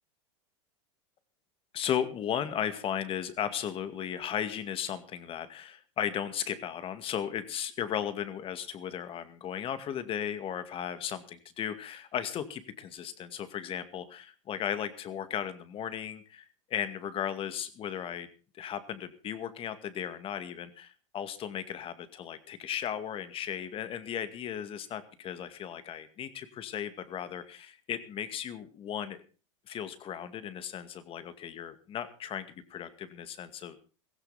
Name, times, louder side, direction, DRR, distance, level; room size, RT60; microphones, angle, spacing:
voice 1, 1.7-18.3 18.5-29.2 29.7-33.8, left 9 dB, 35° left, 11 dB, 2.2 m, -36 dB
16.5 x 16.0 x 4.1 m, 0.36 s
hypercardioid pair, 100°, 16 cm